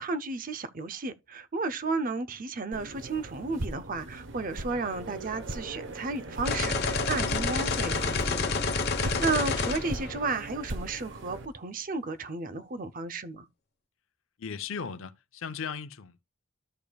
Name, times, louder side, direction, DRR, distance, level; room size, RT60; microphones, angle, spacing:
voice 1, 0.0-8.6 9.0-13.5, right 3 dB, 40° right, 0.6 m, -33 dB
sound 1, 2.7-11.5, right 2 dB, 60° right, 1.0 m, -39 dB
sound 2, 6.4-10.6, left 4 dB, 50° left, 1.1 m, -29 dB
voice 2, 14.4-16.2, left 6 dB, 70° left, 0.6 m, -37 dB
13.0 x 5.1 x 2.3 m
head